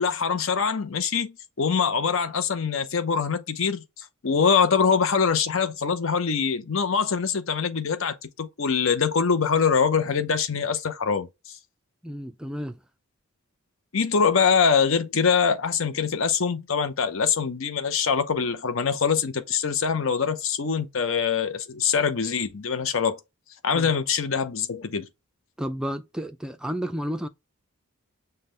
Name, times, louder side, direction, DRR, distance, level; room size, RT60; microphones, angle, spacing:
voice 1, 0.0-11.3 13.9-23.2 23.6-25.1, left 6 dB, 65° left, 0.6 m, -24 dB
voice 2, 12.0-12.8 23.7-23.9 25.6-27.3, equal, 5° right, 0.3 m, -31 dB
5.7 x 2.2 x 3.2 m
head